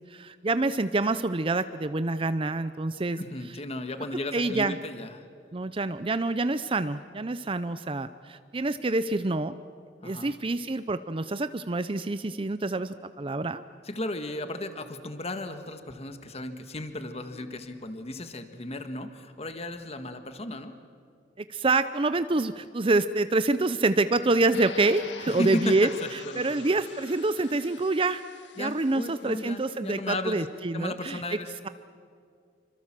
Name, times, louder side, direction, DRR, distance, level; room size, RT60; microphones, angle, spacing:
voice 1, 0.1-3.2 4.3-4.8 5.5-9.5 10.0-13.6 21.4-28.2 28.6-31.2, right 2 dB, 30° right, 12 dB, 0.6 m, -27 dB
voice 2, 3.2-5.2 10.0-10.3 13.8-20.7 25.4-26.5 28.6-30.4 30.7-31.5, left 1 dB, 35° left, 8 dB, 1.7 m, -35 dB
sound 1, 24.5-29.5, left 5 dB, 80° left, 1.6 m, -45 dB
27.5 x 25.5 x 7.5 m, 2.3 s
head